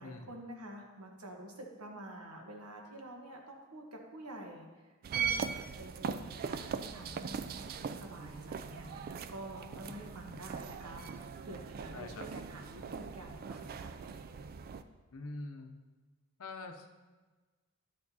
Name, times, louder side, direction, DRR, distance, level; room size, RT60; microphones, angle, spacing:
voice 1, 0.0-13.9, right 1 dB, 75° right, 1 dB, 1.3 m, -49 dB
sound 1, 5.0-14.8, right 6 dB, 45° right, 0.3 m, -40 dB
voice 2, 11.9-12.3 15.1-15.7 16.4-16.9, left 3 dB, 65° left, 5 dB, 0.7 m, -44 dB
10.5 x 6.6 x 2.8 m, 1.3 s
head